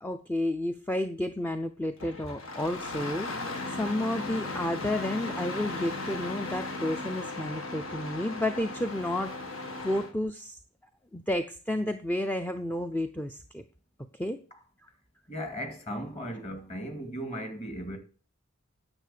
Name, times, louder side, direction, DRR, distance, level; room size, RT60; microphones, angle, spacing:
voice 1, 0.0-9.4 9.8-10.6 11.1-13.6 14.1-14.4, left 1 dB, 10° left, 0.5 m, -31 dB
Engine starting, 2.0-10.1, left 2 dB, 75° left, 1.9 m, -36 dB
voice 2, 15.3-18.0, equal, 30° left, 2.1 m, -37 dB
9.8 x 7.2 x 6.8 m
head